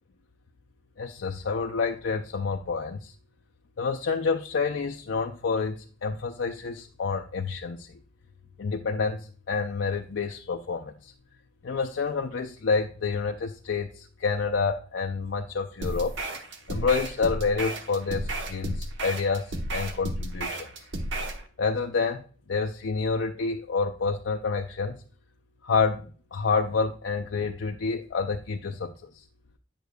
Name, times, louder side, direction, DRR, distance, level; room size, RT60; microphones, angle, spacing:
voice 1, 1.0-3.1 3.8-7.9 8.6-11.1 11.6-16.2 16.7-20.7 21.6-22.2 22.5-25.0 25.6-29.2, left 4 dB, 70° left, 3 dB, 0.5 m, -28 dB
sound 1, 15.8-21.4, right 1 dB, 70° right, 1.0 m, -33 dB
9.1 x 6.6 x 2.3 m, 0.41 s
head